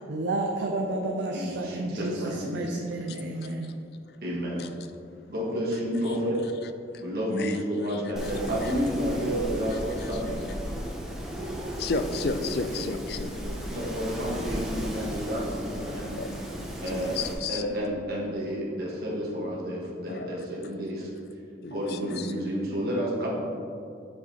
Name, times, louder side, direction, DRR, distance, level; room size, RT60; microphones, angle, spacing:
voice 1, 0.1-3.7, right 2 dB, 80° right, 2 dB, 0.5 m, -31 dB
voice 2, 1.3-2.7 4.2-4.6 5.3-6.4 7.0-10.4 12.7-12.8 13.4-16.2 16.8-17.2 17.5-21.1 21.7-23.3, equal, 55° right, -5 dB, 1.4 m, -30 dB
voice 3, 6.9-8.7 9.7-10.2 11.8-13.3 16.1-17.6 20.1-20.5 21.6-22.3, left 3 dB, 60° left, 9 dB, 0.4 m, -34 dB
Wind, 8.1-17.3, equal, 5° right, 0.7 m, -35 dB
7.5 x 6.5 x 2.9 m, 2.5 s
head